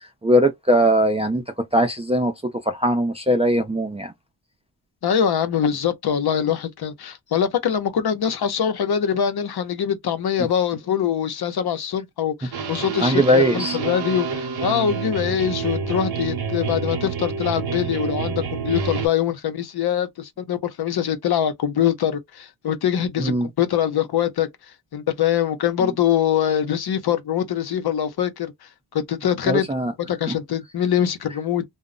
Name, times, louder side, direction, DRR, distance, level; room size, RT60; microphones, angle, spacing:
voice 1, 0.2-1.4 1.7-2.3 2.7-4.1 13.0-13.8 23.2-23.5 29.5-29.9, equal, 15° right, 0.4 m, -19 dB
voice 2, 5.0-29.7 30.1-31.6, left 9 dB, 60° left, 0.8 m, -23 dB
sound 1, 12.5-19.1, right 6 dB, 60° right, 0.8 m, -28 dB
2.2 x 2.0 x 3.7 m
wide cardioid pair, 125°, 43 cm